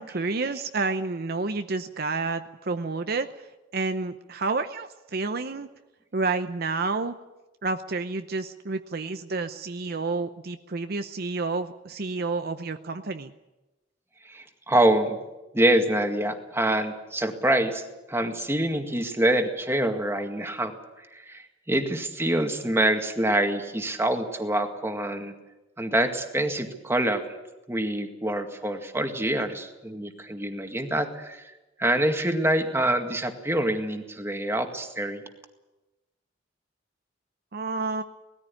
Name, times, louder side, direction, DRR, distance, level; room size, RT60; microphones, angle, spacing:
voice 1, 0.0-3.5 3.7-5.7 6.1-7.1 7.6-13.3 37.5-38.0, right 3 dB, 55° right, 8 dB, 0.8 m, -29 dB
voice 2, 14.3-15.2 15.5-17.8 18.1-20.7 21.3-25.3 25.8-27.2 27.7-31.4 31.8-35.2, right 1 dB, 15° right, 5 dB, 2.0 m, -25 dB
19.5 x 14.5 x 9.8 m, 1.1 s
head